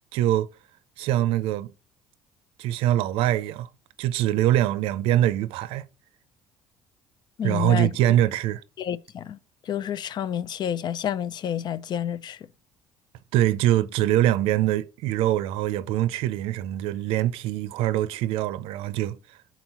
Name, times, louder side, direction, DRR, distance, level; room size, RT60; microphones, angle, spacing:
voice 1, 0.1-0.5 1.0-1.7 2.6-3.7 4.0-5.9 7.4-8.6 13.3-19.2, right 13 dB, 75° right, 0.5 m, -23 dB
voice 2, 7.4-8.1 8.8-9.4 9.7-12.4, left 9 dB, 50° left, 0.5 m, -29 dB
4.5 x 4.0 x 5.5 m
supercardioid pair, 85°, 10 cm